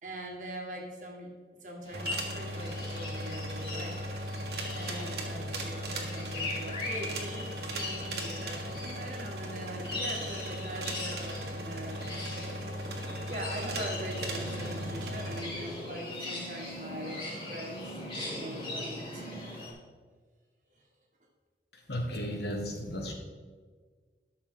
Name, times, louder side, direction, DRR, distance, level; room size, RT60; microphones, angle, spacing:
voice 1, 0.0-1.3 1.6-4.0 4.7-12.6 13.3-17.2 17.5-19.3, equal, 45° right, 0 dB, 1.7 m, -42 dB
sound 1, 1.8-19.7, left 2 dB, 30° left, 2.9 m, -40 dB
sound 2, 1.9-15.4, right 1 dB, 65° right, 1.5 m, -37 dB
voice 2, 21.9-23.1, equal, 70° left, 1 dB, 1.7 m, -34 dB
12.5 x 6.4 x 3.8 m, 1.5 s
head